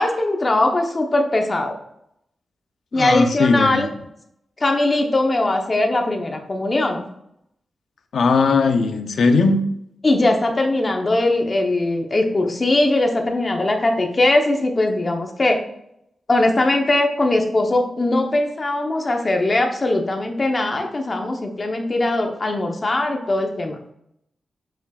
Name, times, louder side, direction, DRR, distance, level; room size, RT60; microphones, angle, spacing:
voice 1, 0.0-1.7 2.9-3.9 4.6-7.0 10.0-15.6 16.3-23.8, left 2 dB, 30° left, 3 dB, 0.9 m, -20 dB
voice 2, 2.9-3.8 8.1-9.6, left 4 dB, 80° left, 6 dB, 0.6 m, -18 dB
7.2 x 5.6 x 2.4 m, 0.76 s
wide cardioid pair, 130°, 0 cm